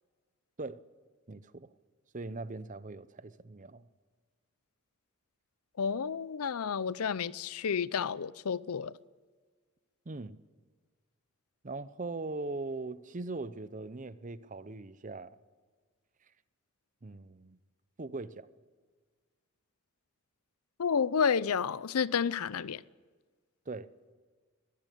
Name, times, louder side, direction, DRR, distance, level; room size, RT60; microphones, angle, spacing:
voice 1, 1.3-1.7 2.1-3.9 10.1-10.4 11.6-15.4 17.0-17.6 18.0-18.5 23.7-23.9, right 3 dB, 35° right, 0.7 m, -40 dB
voice 2, 5.8-8.9 20.8-22.8, left 6 dB, 90° left, 0.5 m, -30 dB
21.0 x 15.0 x 8.4 m
head